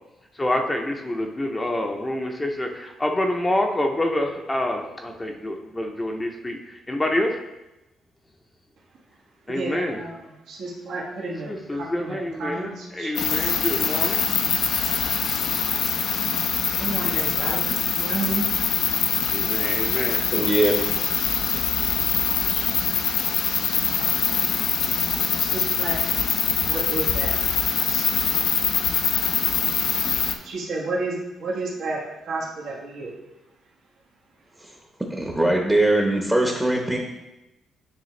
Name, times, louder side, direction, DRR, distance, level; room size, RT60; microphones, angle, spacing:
voice 1, 0.3-7.4 9.5-10.0 11.5-14.2 19.3-20.2, left 1 dB, 15° left, 2 dB, 0.7 m, -27 dB
voice 2, 9.5-13.5 15.4-15.5 16.8-17.6 17.9-18.5 21.2-22.7 24.0-27.4 27.8-28.3 30.3-33.1, right 3 dB, 70° right, -3 dB, 1.4 m, -33 dB
sound 1, 13.2-30.4, left 7 dB, 70° left, 0.6 m, -23 dB
voice 3, 20.3-20.7 34.6-34.7 35.2-37.0, right 1 dB, 10° right, 0 dB, 0.9 m, -21 dB
9.6 x 3.5 x 3.2 m, 0.98 s
cardioid pair, 90°, 0 cm